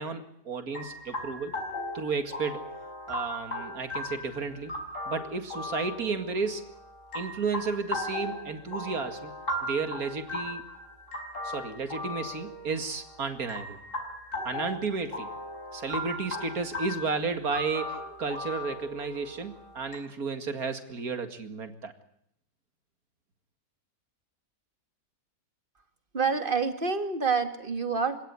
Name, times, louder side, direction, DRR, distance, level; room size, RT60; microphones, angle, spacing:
voice 1, 0.0-1.6 1.9-2.7 3.1-4.7 5.1-6.7 7.1-9.3 9.6-10.6 11.4-13.8 14.4-15.3 15.7-21.9, right 4 dB, 70° right, 8 dB, 2.6 m, -33 dB
sound 1, 0.7-20.0, left 1 dB, 55° left, 6.2 m, -37 dB
voice 2, 26.1-28.2, right 5 dB, 35° right, 8 dB, 2.4 m, -27 dB
27.5 x 17.5 x 9.7 m, 0.72 s
omnidirectional pair, 1.6 m